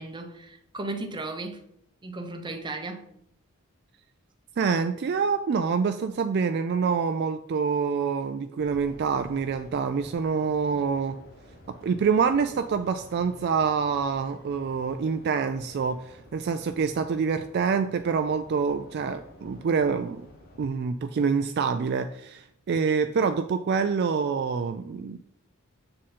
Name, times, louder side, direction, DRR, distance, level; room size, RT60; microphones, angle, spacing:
voice 1, 0.0-1.6 2.0-3.1, right 2 dB, 20° right, 0.7 m, -35 dB
voice 2, 4.6-11.2 11.8-20.2 20.6-25.2, right 5 dB, 50° right, 0.3 m, -26 dB
sound 1, 8.6-20.7, left 1 dB, 45° left, 1.0 m, -51 dB
7.7 x 3.7 x 4.2 m
head